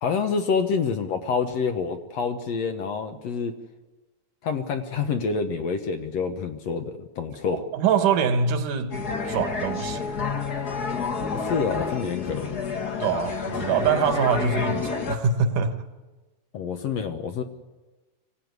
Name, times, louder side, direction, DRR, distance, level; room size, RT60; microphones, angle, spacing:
voice 1, 0.0-3.5 4.4-7.6 11.3-12.5 16.5-17.4, left 5 dB, 65° left, 1.7 m, -27 dB
voice 2, 7.5-9.0 9.3-10.0 13.0-15.8, right 6 dB, 65° right, 2.6 m, -24 dB
sound 1, 8.9-15.2, left 5 dB, 40° left, 1.4 m, -29 dB
24.5 x 16.5 x 9.5 m
omnidirectional pair, 4.2 m